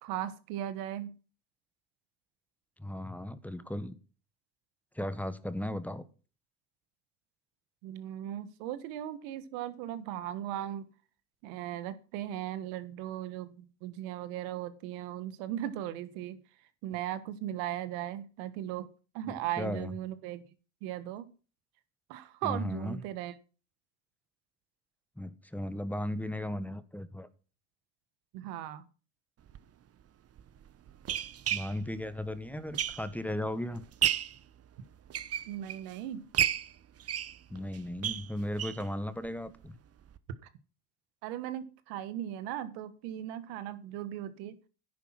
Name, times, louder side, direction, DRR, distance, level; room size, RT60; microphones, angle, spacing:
voice 1, 0.0-1.1 7.8-10.9 11.4-16.4 16.8-18.9 19.1-20.4 20.8-21.3 22.1-23.3 28.3-28.8 35.5-36.2 41.2-44.6, right 12 dB, 85° right, 1.5 m, -37 dB
voice 2, 2.8-3.9 4.9-6.0 19.3-19.9 22.4-23.0 25.2-27.3 31.5-33.9 37.5-39.8, left 1 dB, 5° left, 1.3 m, -36 dB
sound 1, 29.5-29.6 30.4-33.3 33.7-34.4 34.9-35.9 36.3-38.9 39.2-39.3 39.6-39.7 40.1-40.2, right 10 dB, 40° right, 1.0 m, -33 dB
10.5 x 9.1 x 5.8 m
supercardioid pair, 90°, 36 cm